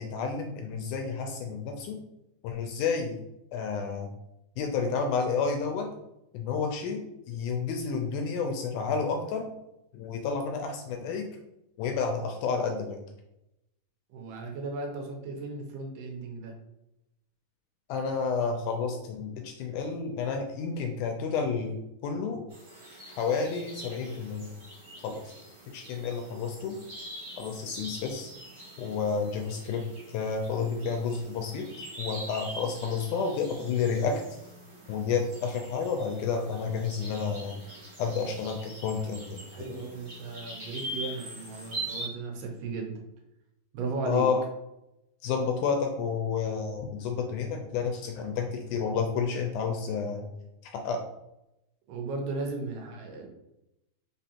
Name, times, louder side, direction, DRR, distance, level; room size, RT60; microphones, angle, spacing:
voice 1, 0.0-2.0 2.4-3.2 3.5-4.1 4.6-5.9 6.3-9.5 9.9-11.3 11.8-13.0 17.9-22.4 23.2-24.5 25.0-25.3 25.7-26.8 27.4-28.3 28.8-29.8 30.1-31.7 32.0-34.2 34.9-37.6 38.0-39.4 44.1-44.4 45.2-50.3 50.7-51.0, left 5 dB, 80° left, 3 dB, 1.8 m, -30 dB
voice 2, 14.1-16.5 39.5-42.9 43.7-44.3 51.9-53.3, right 4 dB, 85° right, 1 dB, 2.5 m, -36 dB
sound 1, 22.5-42.1, right 1 dB, 45° right, 1.6 m, -43 dB
5.0 x 3.6 x 2.8 m, 0.87 s
omnidirectional pair, 3.9 m